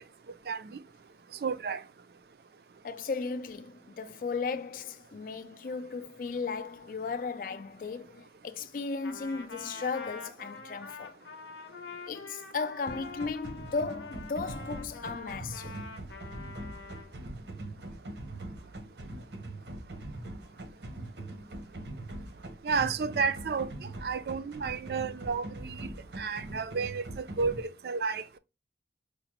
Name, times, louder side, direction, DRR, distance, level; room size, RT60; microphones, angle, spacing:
voice 1, 0.5-0.8 1.4-1.8 22.6-25.9 26.2-28.4, right 5 dB, 60° right, 0.4 m, -32 dB
voice 2, 2.8-11.2 12.1-15.7, left 4 dB, 50° left, 0.3 m, -35 dB
Trumpet, 9.0-17.1, left 4 dB, 90° left, 0.7 m, -46 dB
sound 1, 12.9-27.6, right 1 dB, 85° right, 0.9 m, -42 dB
4.8 x 2.1 x 2.9 m
head